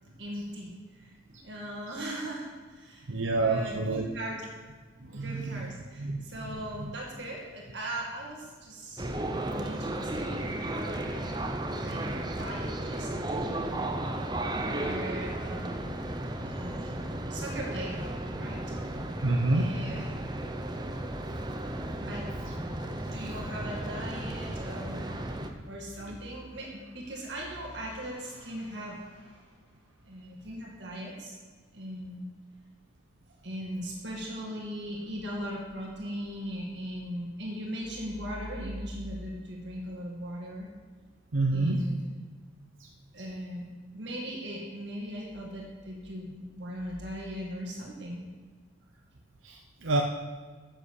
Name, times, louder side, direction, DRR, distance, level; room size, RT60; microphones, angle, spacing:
voice 1, 0.2-1.1 1.4-3.2 3.4-4.4 5.1-11.4 11.8-14.3 14.5-16.0 16.4-17.0 17.3-18.0 18.4-19.0 19.5-20.1 21.3-21.7 22.0-22.3 22.9-29.5 30.0-31.4 31.7-32.3 33.4-40.7 41.5-42.0 43.1-43.6 43.9-48.2, equal, 65° right, -2 dB, 2.2 m, -39 dB
voice 2, 3.1-4.1 5.1-5.7 6.0-6.2 6.4-6.9 19.2-19.7 41.3-41.8 49.4-50.0, right 2 dB, 85° right, 2 dB, 0.9 m, -28 dB
sound 1, 9.0-25.5, right 1 dB, 20° right, 0.7 m, -34 dB
10.0 x 7.9 x 6.5 m, 1.4 s
head